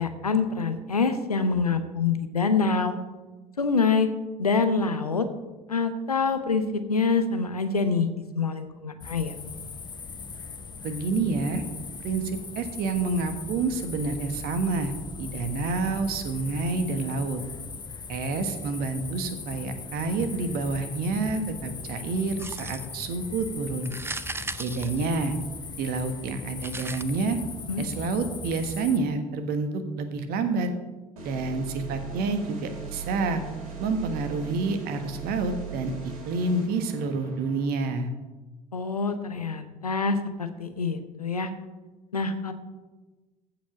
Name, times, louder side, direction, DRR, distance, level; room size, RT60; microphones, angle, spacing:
voice 1, 0.0-3.0 3.6-4.1 4.4-5.3 5.7-9.3 27.7-27.9 38.7-41.5 42.1-42.5, left 4 dB, 90° left, 9 dB, 0.8 m, -26 dB
sound 1, 9.0-29.0, left 5 dB, 25° left, 0.9 m, -39 dB
voice 2, 10.8-11.6 12.0-17.4 18.1-23.9 24.6-25.3 25.8-27.4 27.8-30.7 31.2-33.4 33.8-35.9 36.2-38.1, right 3 dB, 55° right, 8 dB, 1.4 m, -28 dB
sound 2, 22.4-23.0 23.8-25.6 26.6-27.0, right 3 dB, 10° right, 0.5 m, -37 dB
sound 3, 31.2-37.6, right 5 dB, 70° right, 2.6 m, -39 dB
14.5 x 5.2 x 6.0 m, 1.2 s
figure-of-eight pair, 60°, 19 cm